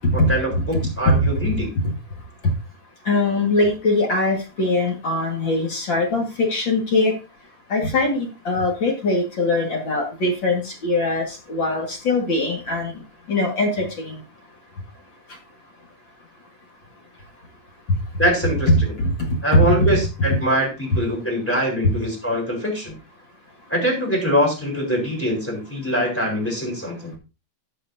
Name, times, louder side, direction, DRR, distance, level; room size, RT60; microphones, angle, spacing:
voice 1, 0.1-1.7 18.2-18.9 19.4-22.9 23.7-27.1, equal, 5° left, -2 dB, 3.5 m, -23 dB
voice 2, 0.8-1.9 2.4-2.5 3.1-7.1 7.7-12.9 13.3-14.2 18.7-20.0, left 2 dB, 45° left, 1 dB, 2.1 m, -21 dB
13.5 x 8.2 x 2.7 m, 0.30 s
omnidirectional pair, 3.5 m